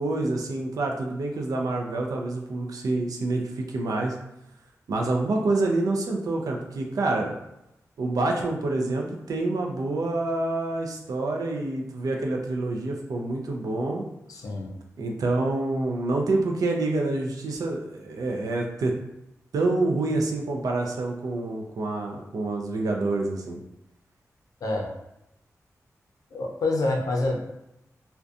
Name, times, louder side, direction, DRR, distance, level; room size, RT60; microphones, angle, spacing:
voice 1, 0.0-4.1 4.9-7.3 8.0-14.0 15.0-18.9 19.5-23.6, right 2 dB, 85° right, 1 dB, 0.4 m, -27 dB
voice 2, 14.3-14.7 24.6-24.9 26.3-27.5, left 2 dB, 85° left, 1 dB, 0.5 m, -27 dB
2.5 x 2.1 x 2.4 m, 0.88 s
cardioid pair, 65°, 6 cm